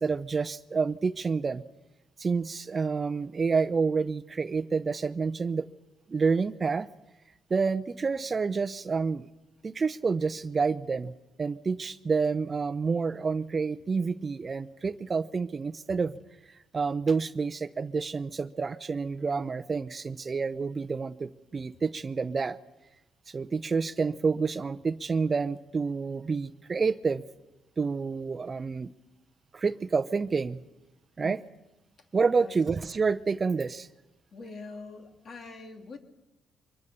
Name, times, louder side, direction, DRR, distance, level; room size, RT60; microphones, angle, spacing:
voice 1, 0.0-1.6 2.2-5.7 6.1-6.9 7.5-9.3 9.6-16.2 16.7-22.6 23.3-27.2 27.8-28.9 29.5-30.6 31.2-31.4 32.1-33.9, right 5 dB, 35° right, 0.7 m, -28 dB
voice 2, 32.0-32.5 34.3-36.0, left 3 dB, 50° left, 2.9 m, -44 dB
24.0 x 21.5 x 6.9 m
cardioid pair, 90°, 0 cm